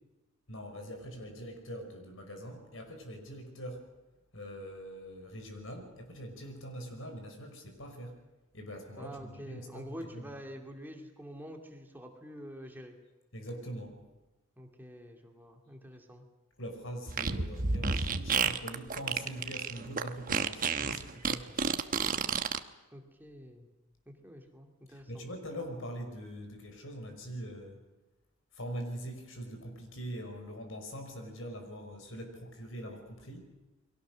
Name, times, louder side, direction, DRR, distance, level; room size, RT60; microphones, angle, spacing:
voice 1, 0.5-3.8 4.3-8.2 8.5-10.3 13.3-14.0 16.6-21.8 24.9-27.8 28.5-33.4, equal, 70° left, 5 dB, 5.5 m, -43 dB
voice 2, 9.0-13.0 14.6-16.3 22.9-23.7 24.1-25.2, equal, 10° right, 3 dB, 2.4 m, -47 dB
Fart, 17.1-22.6, right 5 dB, 40° right, 1.1 m, -30 dB
29.5 x 22.5 x 6.3 m, 1.1 s
head